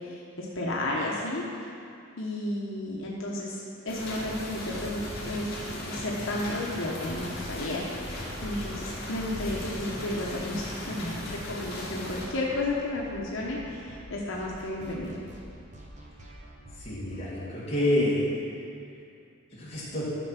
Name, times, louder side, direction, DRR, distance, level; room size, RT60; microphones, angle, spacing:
voice 1, 0.0-1.7 2.2-7.8 8.4-15.2, left 1 dB, 75° left, -3 dB, 1.0 m, -33 dB
sound 1, 3.9-12.2, left 1 dB, 45° left, 2.3 m, -37 dB
sound 2, 10.2-18.1, right 1 dB, 35° right, 1.1 m, -48 dB
voice 2, 16.8-18.3 19.5-20.1, left 1 dB, 30° left, -8 dB, 2.2 m, -28 dB
11.5 x 4.6 x 5.9 m, 2.5 s
head